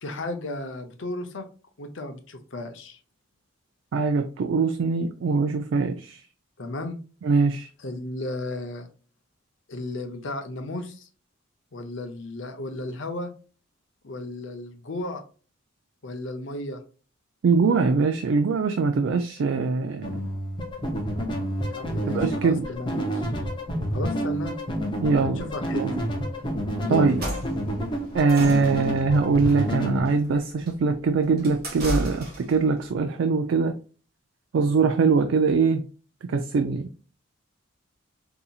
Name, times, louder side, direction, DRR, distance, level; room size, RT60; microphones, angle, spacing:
voice 1, 0.0-1.4 1.8-3.0 6.6-7.0 7.8-8.9 9.7-11.1 11.7-13.3 14.0-15.2 16.0-16.8 21.7-23.3 23.9-24.6 25.2-25.8 26.8-27.1, left 2 dB, 65° left, 0.6 m, -34 dB
voice 2, 3.9-6.2 7.2-7.7 17.4-20.2 22.1-22.7 25.0-25.4 25.7-25.9 26.9-27.3 28.1-33.8 34.5-35.9 36.3-36.9, right 4 dB, 65° right, 0.3 m, -22 dB
sound 1, 20.0-30.0, equal, 25° left, 0.6 m, -29 dB
sound 2, 27.0-32.7, right 1 dB, 50° right, 1.3 m, -35 dB
4.0 x 2.7 x 2.3 m
head